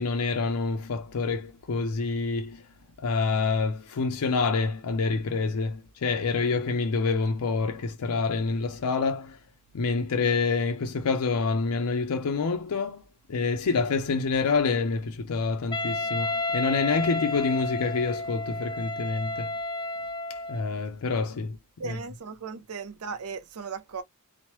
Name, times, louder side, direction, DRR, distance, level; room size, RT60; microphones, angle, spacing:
voice 1, 0.0-2.6 3.0-9.4 9.7-13.0 13.3-19.5 20.5-21.6 21.9-22.0, left 4 dB, 85° left, 0.5 m, -27 dB
Wind instrument woodwind instrument, 15.7-20.7, left 2 dB, 20° left, 0.3 m, -31 dB
voice 2, 21.8-24.0, right 5 dB, 70° right, 0.5 m, -37 dB
3.0 x 2.0 x 3.0 m
head